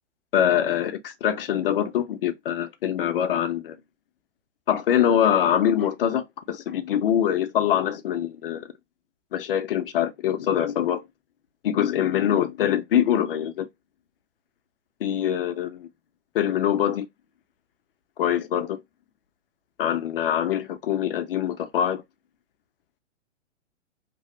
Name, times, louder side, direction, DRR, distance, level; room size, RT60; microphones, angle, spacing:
voice 1, 0.3-3.8 4.7-8.7 9.3-11.0 11.6-13.7 15.0-15.9 16.3-17.1 18.2-18.8 19.8-22.0, left 10 dB, 50° left, 0.5 m, -24 dB
2.9 x 2.0 x 3.1 m
hypercardioid pair, 160°, 37 cm